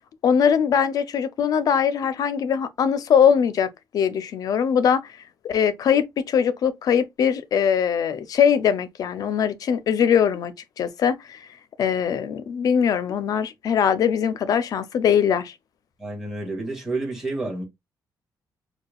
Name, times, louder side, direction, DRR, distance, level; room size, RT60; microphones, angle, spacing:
voice 1, 0.2-5.1 5.4-11.4 11.8-15.5, left 7 dB, 60° left, 0.6 m, -21 dB
voice 2, 16.0-17.6, right 2 dB, 5° right, 2.2 m, -29 dB
6.6 x 2.4 x 2.3 m
cardioid pair, 160°, 7 cm